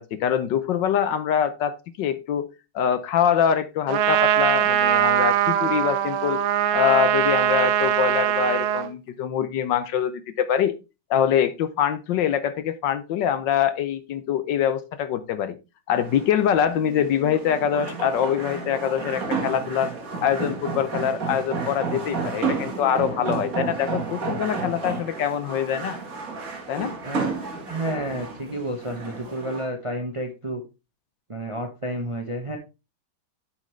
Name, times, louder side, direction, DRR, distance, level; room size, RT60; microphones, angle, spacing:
voice 1, 0.0-2.5 2.7-6.4 6.7-10.7 11.1-15.5 15.9-19.9 20.2-26.0 26.7-27.0, left 9 dB, 70° left, 12 dB, 1.3 m, -24 dB
Trumpet, 3.9-8.9, right 10 dB, 85° right, 1.6 m, -21 dB
sound 1, 15.9-29.7, right 4 dB, 45° right, 1.9 m, -31 dB
voice 2, 27.7-30.6 31.3-32.6, right 1 dB, 25° right, 4 dB, 0.7 m, -30 dB
9.0 x 6.4 x 3.2 m, 0.28 s
omnidirectional pair, 2.2 m